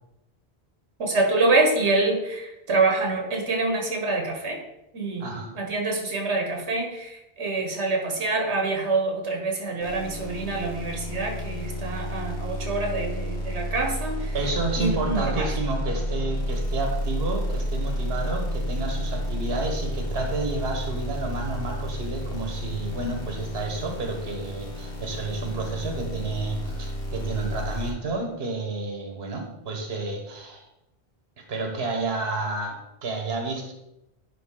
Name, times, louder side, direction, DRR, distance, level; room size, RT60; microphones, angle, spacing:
voice 1, 1.0-4.6 4.9-5.3 5.5-14.3 14.8-15.5, right 3 dB, 85° right, 1 dB, 1.5 m, -26 dB
voice 2, 5.2-5.5 14.3-30.6 31.5-33.7, right 3 dB, 65° right, 2 dB, 1.4 m, -30 dB
sound 1, 9.8-27.9, equal, 85° left, 1.8 m, -31 dB
10.5 x 3.9 x 3.8 m, 0.88 s
omnidirectional pair, 1.1 m